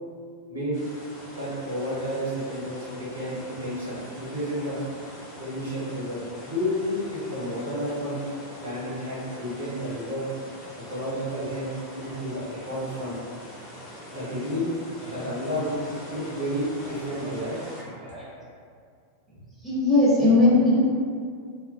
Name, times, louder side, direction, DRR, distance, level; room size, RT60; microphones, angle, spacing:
voice 1, 0.5-0.8 1.4-4.8 5.4-8.2 8.6-10.3 10.8-11.7 12.0-13.2 14.1-14.7 15.0-15.8 16.1-17.6, equal, 75° right, -9 dB, 1.0 m, -31 dB
sound 1, 0.7-17.8, equal, 25° left, 1.1 m, -43 dB
voice 2, 15.0-15.3 15.7-16.2 16.8-17.4 17.8-18.3 19.6-20.8, left 2 dB, 10° right, -10 dB, 0.9 m, -22 dB
2.7 x 2.3 x 2.5 m, 2.2 s
figure-of-eight pair, 90°, 0 cm